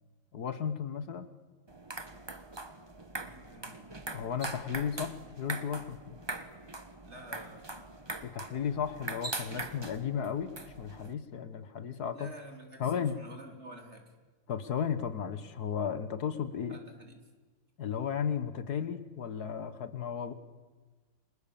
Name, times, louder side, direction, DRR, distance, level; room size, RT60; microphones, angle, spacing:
voice 1, 0.3-1.3 4.1-6.2 8.2-10.5 10.8-12.3 12.8-13.2 14.5-16.8 17.8-20.3, left 7 dB, 70° left, 11 dB, 2.0 m, -34 dB
sound 1, 1.7-11.1, right 2 dB, 15° right, 1.2 m, -42 dB
voice 2, 3.2-3.9 7.0-7.7 12.1-14.1 16.7-17.3, right 1 dB, 40° right, 3 dB, 4.1 m, -49 dB
30.0 x 26.0 x 7.1 m, 1.3 s
omnidirectional pair, 1.7 m